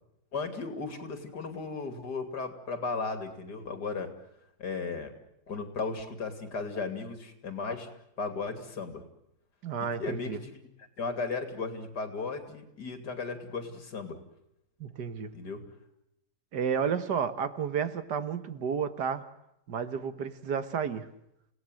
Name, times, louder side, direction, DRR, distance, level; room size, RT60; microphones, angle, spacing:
voice 1, 0.3-4.1 4.6-5.1 5.5-7.9 8.2-9.0 9.8-10.6 11.0-14.2 15.3-15.6, left 4 dB, 90° left, 7 dB, 3.3 m, -35 dB
voice 2, 9.6-10.4 14.8-15.3 16.5-19.2 19.7-21.1, right 7 dB, 85° right, 11 dB, 2.0 m, -31 dB
29.5 x 18.0 x 7.8 m, 0.82 s
omnidirectional pair, 1.7 m